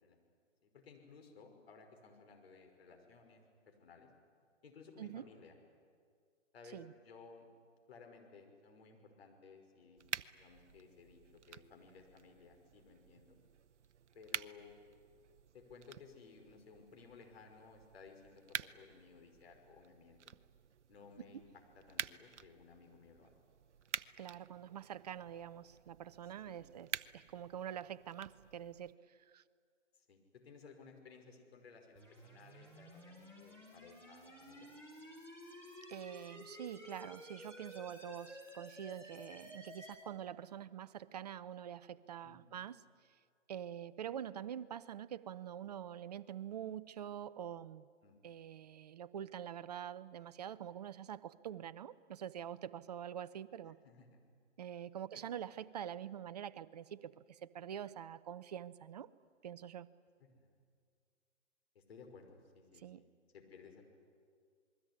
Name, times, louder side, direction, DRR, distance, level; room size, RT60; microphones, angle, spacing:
voice 1, 0.6-4.1 4.6-5.6 6.5-7.5 7.9-10.1 10.3-13.4 14.1-14.8 15.5-20.3 20.9-23.3 26.4-26.6 29.9-34.7 42.2-42.6 44.1-44.2 48.0-48.5 53.8-54.2 55.1-55.2 60.2-60.5 61.7-63.1 63.3-63.8, left 5 dB, 55° left, 4 dB, 5.5 m, -58 dB
sound 1, 10.0-28.9, right 8 dB, 70° right, 0.8 m, -49 dB
voice 2, 24.2-29.4 35.9-42.8 43.5-47.9 48.2-53.8 54.6-59.1 59.4-59.9 62.8-63.0, right 9 dB, 35° right, 15 dB, 0.7 m, -46 dB
sound 2, 32.0-40.0, equal, 5° left, 6.2 m, -53 dB
28.0 x 21.0 x 9.7 m, 2.1 s
hypercardioid pair, 145°, 37 cm